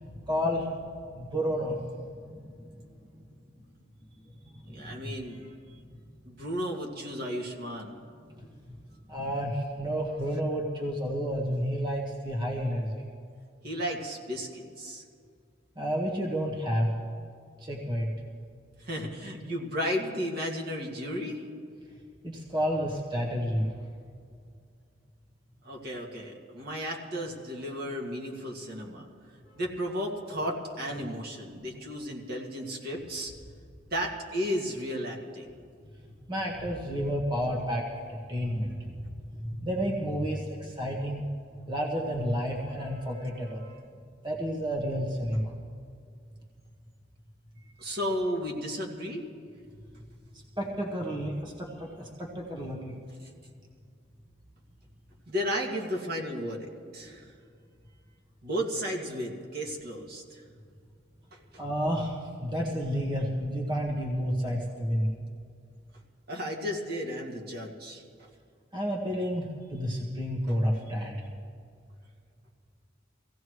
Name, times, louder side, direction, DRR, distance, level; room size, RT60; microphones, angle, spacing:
voice 1, 0.1-0.7 1.1-1.8 2.2-2.7 4.6-5.1 8.4-8.5 9.1-13.0 15.7-16.9 17.6-18.1 22.2-23.7 30.8-31.0 36.3-41.3 41.7-43.6 44.2-45.5 50.3-53.0 61.6-65.1 68.7-71.2, equal, 25° right, -1 dB, 1.6 m, -31 dB
voice 2, 4.7-5.5 6.3-8.0 13.6-15.0 18.8-21.4 25.6-29.0 29.6-33.3 33.9-35.5 43.6-43.8 47.8-49.2 53.2-53.3 55.3-57.4 58.4-60.4 61.3-61.6 66.3-68.3, equal, 55° right, -1 dB, 2.2 m, -34 dB
24.5 x 16.5 x 3.2 m, 2.3 s
head